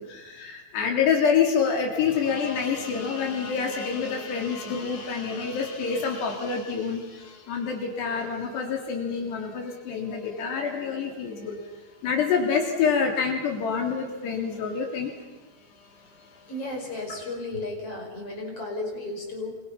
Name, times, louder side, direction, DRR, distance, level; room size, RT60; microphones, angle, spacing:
voice 1, 0.0-11.7 12.0-15.1 16.0-16.5, left 6 dB, 75° left, 1 dB, 5.1 m, -27 dB
voice 2, 16.5-19.6, left 2 dB, 35° left, 0 dB, 6.4 m, -34 dB
28.0 x 27.0 x 5.9 m, 1.2 s
omnidirectional pair, 4.9 m